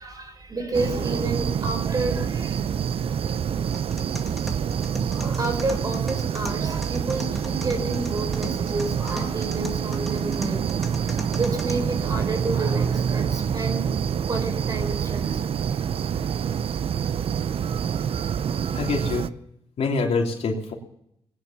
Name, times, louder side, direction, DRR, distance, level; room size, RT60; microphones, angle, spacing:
voice 1, 0.0-2.6 5.1-11.0 11.3-13.9 14.3-15.4, right 2 dB, 35° right, 6 dB, 4.2 m, -30 dB
sound 1, 0.7-19.3, right 8 dB, 65° right, 0.6 m, -26 dB
sound 2, 3.7-11.7, left 1 dB, ahead, 2.1 m, -40 dB
voice 2, 18.7-19.3 19.8-20.7, left 4 dB, 75° left, 1 dB, 3.0 m, -25 dB
19.5 x 10.0 x 7.1 m, 0.76 s
cardioid pair, 105°, 10 cm